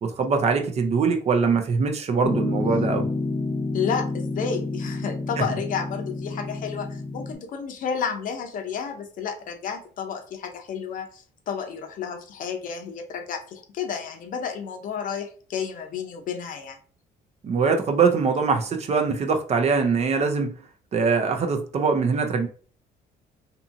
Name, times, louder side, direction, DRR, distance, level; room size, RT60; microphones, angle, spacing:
voice 1, 0.0-3.1 17.4-20.5 20.9-22.5, right 5 dB, 40° right, 0.5 m, -22 dB
Piano, 2.2-7.3, left 3 dB, 10° left, 0.4 m, -29 dB
voice 2, 3.7-16.8, left 6 dB, 55° left, 0.6 m, -31 dB
2.7 x 2.7 x 2.5 m
cardioid pair, 110°, 17 cm